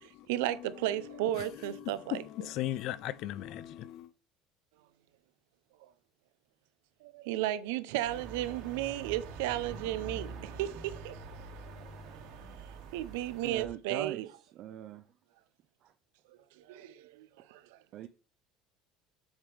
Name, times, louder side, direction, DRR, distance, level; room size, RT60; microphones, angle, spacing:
voice 1, 0.0-2.2 5.8-5.9 7.0-11.2 12.9-14.3 16.6-17.8, right 14 dB, 90° right, 0.7 m, -34 dB
voice 2, 1.6-4.1, left 13 dB, 55° left, 0.4 m, -37 dB
sound 1, 8.0-13.7, right 4 dB, 65° right, 2.0 m, -45 dB
voice 3, 13.4-14.2 14.5-15.1 15.8-15.9 17.9-18.1, right 11 dB, 50° right, 0.5 m, -41 dB
7.2 x 3.7 x 5.0 m
cardioid pair, 140°, 0 cm